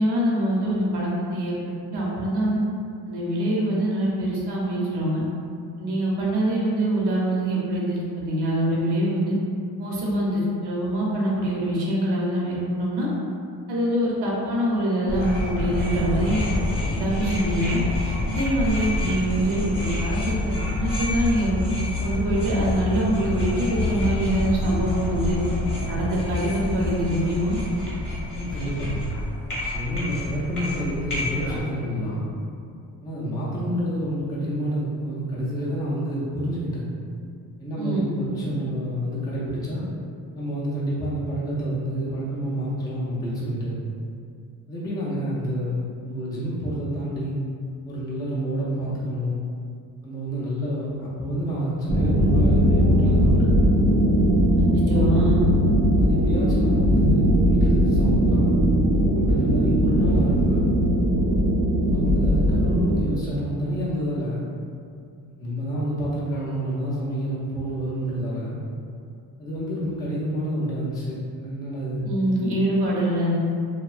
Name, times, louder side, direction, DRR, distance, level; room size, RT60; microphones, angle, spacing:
voice 1, 0.0-2.6 3.1-5.2 5.8-9.3 9.8-13.1 13.7-16.4 16.9-17.8 18.2-21.6 22.0-25.4 25.9-27.6 37.8-38.1 54.6-55.5 72.0-73.4, right 1 dB, 80° right, -5 dB, 0.8 m, -24 dB
sound 1, 15.1-31.6, left 2 dB, 35° left, 0.7 m, -28 dB
voice 2, 28.3-29.1 29.7-32.3 33.0-36.9 37.6-39.9 40.3-43.8 44.7-47.3 47.8-49.4 50.0-53.7 56.0-58.6 59.1-60.7 61.8-64.4 65.2-68.6 69.4-72.1, equal, 10° left, -7 dB, 0.3 m, -28 dB
sound 2, 51.9-63.0, equal, 45° right, 0.5 m, -19 dB
2.7 x 2.2 x 2.4 m, 2.4 s
cardioid pair, 155°, 39 cm